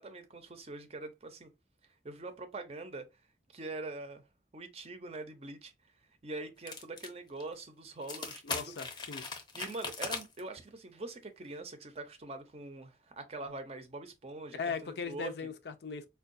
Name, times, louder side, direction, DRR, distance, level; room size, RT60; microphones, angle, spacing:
voice 1, 0.0-1.5 2.0-3.1 3.5-4.2 4.5-5.7 6.2-8.7 9.5-15.3, right 2 dB, 35° right, 0.5 m, -43 dB
sound 1, 6.7-7.1 7.4-7.5 8.0-10.4, left 4 dB, 25° left, 0.6 m, -39 dB
voice 2, 8.4-9.3 14.5-16.0, left 5 dB, 65° left, 0.5 m, -38 dB
4.5 x 2.3 x 2.5 m
head